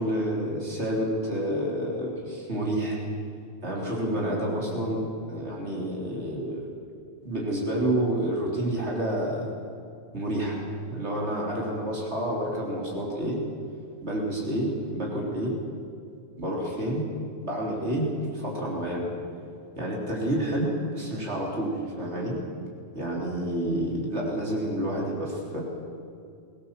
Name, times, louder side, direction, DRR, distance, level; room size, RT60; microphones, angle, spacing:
voice 1, 0.0-3.0 3.6-6.7 7.2-9.5 10.1-10.6 10.9-13.4 14.0-15.5 16.4-17.0 17.4-18.1 18.3-19.0 19.8-22.4 22.9-25.6, right 1 dB, 90° right, -3 dB, 4.0 m, -29 dB
22.5 x 18.5 x 7.5 m, 2.5 s
omnidirectional pair, 1.1 m